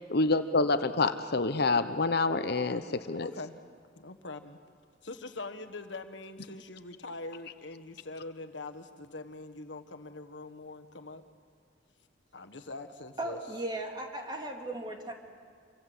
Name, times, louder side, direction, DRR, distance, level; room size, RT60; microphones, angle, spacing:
voice 1, 0.1-3.3, left 3 dB, 60° left, 0.9 m, -27 dB
voice 2, 3.2-3.6 4.0-4.6 5.0-11.2 12.3-13.4, left 2 dB, 80° left, 1.5 m, -43 dB
voice 3, 13.2-15.1, right 1 dB, 25° right, 2.7 m, -36 dB
26.5 x 24.0 x 7.9 m
head